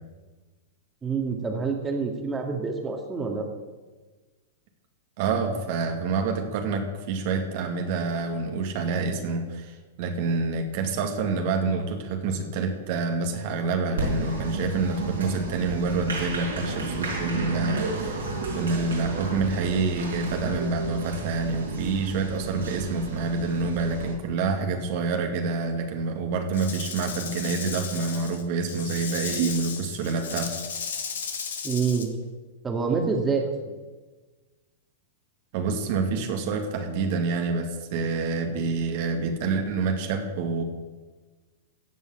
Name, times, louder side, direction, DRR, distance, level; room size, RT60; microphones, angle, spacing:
voice 1, 1.0-3.4 31.6-32.2 32.6-33.5, right 5 dB, 20° right, 1 dB, 2.1 m, -27 dB
voice 2, 5.2-18.3 18.5-30.6 35.5-40.6, right 4 dB, 55° right, 3 dB, 2.2 m, -27 dB
Applause, 14.0-24.1, right 3 dB, 85° right, 5.5 m, -32 dB
Rattle / Rattle (instrument), 26.5-32.1, left 6 dB, 75° left, 1.8 m, -35 dB
15.5 x 5.5 x 8.8 m, 1.3 s
hypercardioid pair, 110°, 0 cm